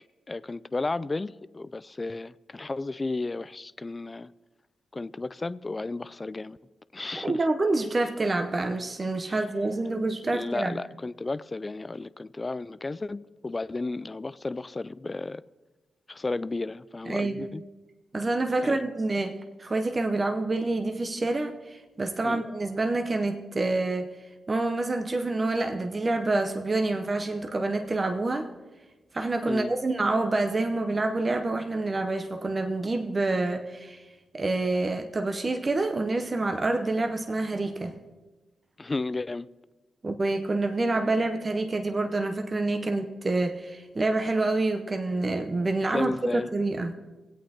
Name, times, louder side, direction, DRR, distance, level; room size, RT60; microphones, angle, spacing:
voice 1, 0.3-4.3 4.9-6.6 6.9-7.4 9.3-9.4 10.3-15.4 16.1-17.6 18.6-18.9 22.2-22.5 29.5-29.7 38.8-39.5 45.9-46.5, left 3 dB, 35° left, 0.3 m, -33 dB
voice 2, 7.1-10.8 17.1-17.5 18.1-19.3 19.6-24.1 24.5-28.5 29.1-34.0 34.3-38.0 40.0-46.9, right 2 dB, 40° right, 0.7 m, -27 dB
17.0 x 8.5 x 2.9 m
supercardioid pair, 40°, 0 cm